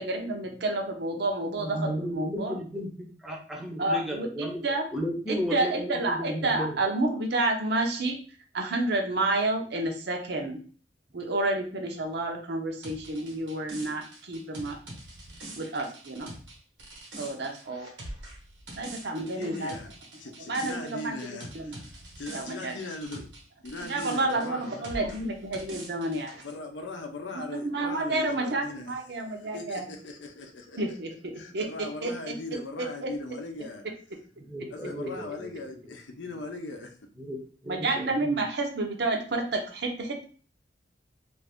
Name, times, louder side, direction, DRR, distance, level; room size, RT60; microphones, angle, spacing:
voice 1, 0.0-2.5 3.8-4.8 5.3-8.2 8.5-10.6 11.1-14.8 15.5-16.3 17.2-17.9 18.8-19.8 20.5-21.2 21.5-21.8 22.3-22.7 23.8-26.3 27.3-29.9 30.8-31.1 31.5-32.3 32.8-33.1 37.7-40.2, right 2 dB, 65° right, 0.7 m, -30 dB
voice 2, 1.6-4.6 4.9-6.8 34.4-35.5 35.8-35.9 36.2-36.5 37.2-38.4, equal, ahead, 0.6 m, -34 dB
sound 1, 12.8-23.4 23.7-26.5, right 1 dB, 85° right, 1.2 m, -44 dB
voice 3, 19.2-19.9 20.2-23.2 23.6-25.0 26.4-28.9 29.3-30.8 31.4-33.8 34.7-36.9, left 2 dB, 85° left, 0.6 m, -39 dB
2.5 x 2.5 x 3.5 m
head